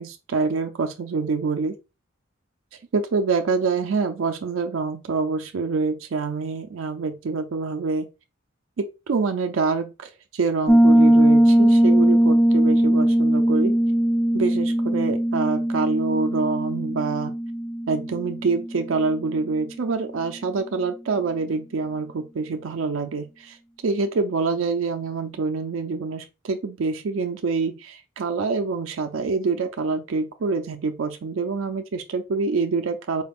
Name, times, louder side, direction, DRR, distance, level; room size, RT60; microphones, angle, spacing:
voice 1, 0.0-1.8 2.9-8.1 8.8-13.7 14.3-17.3 17.9-23.6 23.8-33.2, right 4 dB, 75° right, 0.4 m, -26 dB
Piano, 10.7-19.2, right 1 dB, 5° left, 0.3 m, -19 dB
4.4 x 2.4 x 3.4 m
head